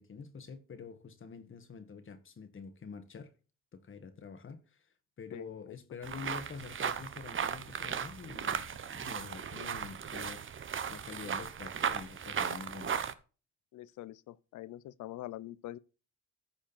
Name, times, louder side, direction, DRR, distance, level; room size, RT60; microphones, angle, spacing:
voice 1, 0.0-3.3 3.7-4.6 5.2-13.0, left 5 dB, 40° left, 1.8 m, -47 dB
voice 2, 5.3-5.8 13.7-15.8, left 15 dB, 80° left, 0.7 m, -45 dB
sound 1, 6.0-13.1, right 7 dB, 40° right, 1.0 m, -36 dB
14.5 x 5.1 x 4.3 m
cardioid pair, 90°, 30 cm